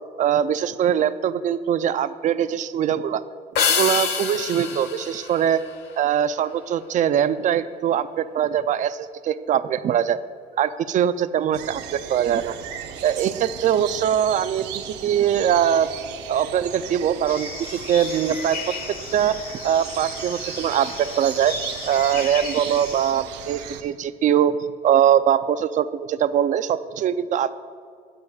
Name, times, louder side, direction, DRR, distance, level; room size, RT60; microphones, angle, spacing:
voice 1, 0.2-3.2 3.7-5.6 6.0-10.2 10.6-12.6 13.0-15.9 16.3-18.7 19.1-19.4 19.6-21.5 21.9-27.5, right 9 dB, 50° right, 13 dB, 0.5 m, -22 dB
sound 1, 3.5-6.2, left 6 dB, 80° left, 1.1 m, -26 dB
sound 2, 11.5-23.8, right 9 dB, 85° right, 0.8 m, -36 dB
sound 3, 17.3-23.1, left 4 dB, 60° left, 1.6 m, -36 dB
23.5 x 8.7 x 2.4 m, 2.1 s
cardioid pair, 110°, 17 cm